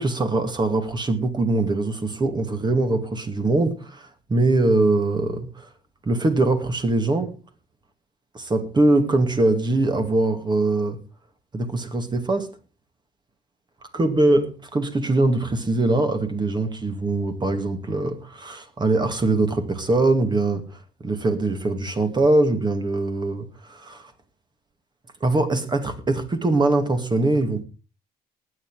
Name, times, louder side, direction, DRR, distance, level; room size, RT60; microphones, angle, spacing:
voice 1, 0.0-5.7 6.0-7.4 8.3-11.0 11.5-12.5 13.9-24.1 25.2-27.6, right 2 dB, 25° right, 2.3 m, -22 dB
19.5 x 7.7 x 4.9 m
cardioid pair, 110°, 17 cm